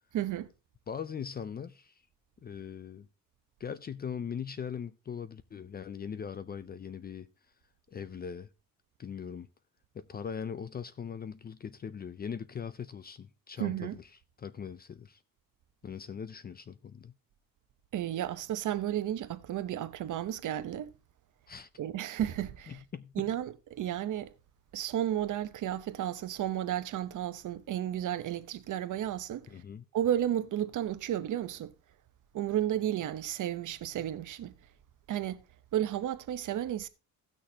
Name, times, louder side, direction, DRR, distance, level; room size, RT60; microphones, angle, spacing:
voice 1, 0.1-0.5 13.6-14.0 17.9-20.9 21.8-22.8 23.2-24.3 24.7-29.5 29.9-31.7 32.3-34.5 35.1-35.4 35.7-36.9, right 11 dB, 55° right, 0.9 m, -33 dB
voice 2, 0.9-1.9 2.4-3.1 3.6-7.3 7.9-8.5 9.0-9.5 9.9-14.0 14.4-15.2 15.8-17.1 21.5-21.7 22.7-23.1 29.5-29.8, left 7 dB, 25° left, 0.4 m, -40 dB
17.0 x 6.4 x 2.8 m
cardioid pair, 150°, 36 cm